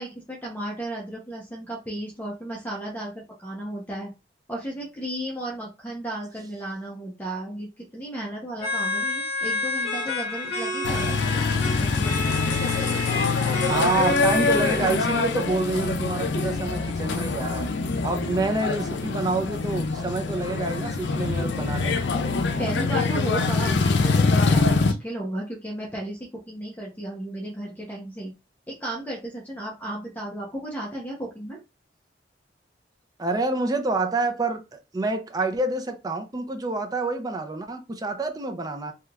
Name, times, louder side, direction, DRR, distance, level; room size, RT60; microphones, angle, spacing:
voice 1, 0.0-3.1 3.4-4.1 4.5-12.3 22.6-26.2 26.5-28.3 28.7-31.6, right 1 dB, 10° left, 0.8 m, -34 dB
sound 1, 8.6-15.4, left 2 dB, 60° left, 0.9 m, -30 dB
sound 2, 10.8-24.9, left 4 dB, 80° left, 0.5 m, -24 dB
voice 2, 13.7-17.7 18.0-22.1 33.2-38.9, right 2 dB, 20° right, 0.5 m, -27 dB
3.2 x 2.9 x 2.4 m
head